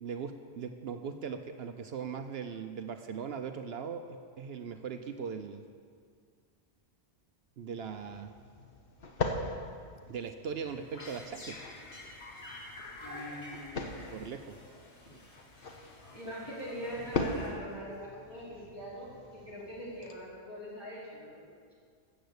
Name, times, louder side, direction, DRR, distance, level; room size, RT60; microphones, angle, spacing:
voice 1, 0.0-5.6 7.6-8.3 10.1-11.6 14.1-14.6, right 6 dB, 70° right, 7 dB, 0.9 m, -39 dB
sound 1, 7.7-20.1, left 3 dB, 60° left, 1.3 m, -41 dB
sound 2, 10.6-17.9, left 2 dB, 85° left, 2.9 m, -49 dB
voice 2, 13.0-14.3 16.1-21.7, equal, 20° left, -8 dB, 4.6 m, -43 dB
13.5 x 8.0 x 8.0 m, 2.1 s
omnidirectional pair, 1.1 m